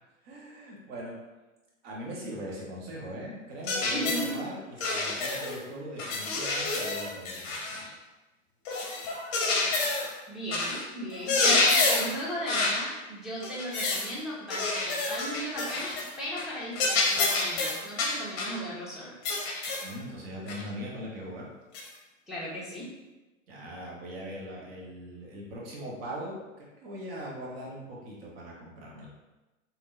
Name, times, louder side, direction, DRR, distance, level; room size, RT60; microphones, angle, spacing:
voice 1, 0.2-1.2 1.8-4.6 4.9-7.9 19.8-21.5 23.5-29.1, equal, 50° right, -3 dB, 1.2 m, -40 dB
sound 1, 3.7-4.3 4.8-5.6 6.0-7.9 8.6-10.1 10.5-10.8 11.1-12.1 12.5-12.8 13.4-14.1 14.5-16.1 16.4-16.5 16.8-18.6 19.2-19.9 20.5-20.6 21.7-21.9, left 3 dB, 35° left, 0.8 m, -28 dB
voice 2, 3.9-4.5 10.3-19.1 22.3-22.9, equal, ahead, -8 dB, 0.7 m, -36 dB
3.5 x 2.8 x 2.5 m, 1.1 s
hypercardioid pair, 115°, 39 cm